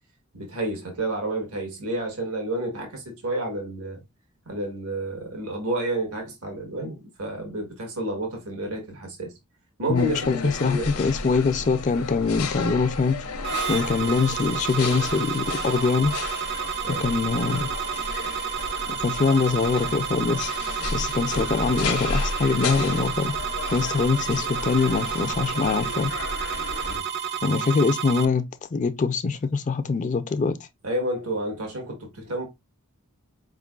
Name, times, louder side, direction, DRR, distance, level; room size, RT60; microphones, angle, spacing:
voice 1, 0.3-4.0 4.4-9.3 9.8-11.0 14.0-14.1 16.8-17.0 21.3-21.5 26.9-27.1 30.8-32.4, right 1 dB, 80° right, 1.5 m, -30 dB
sound 1, 9.9-27.0, left 4 dB, 80° left, 0.9 m, -33 dB
voice 2, 9.9-13.3 13.7-16.1 17.0-17.7 18.9-20.5 20.9-23.3 23.7-26.1 27.4-28.4 28.7-30.6, left 4 dB, 35° left, 0.3 m, -23 dB
sound 2, 13.4-28.3, right 8 dB, 45° right, 0.3 m, -31 dB
4.6 x 3.6 x 2.3 m
head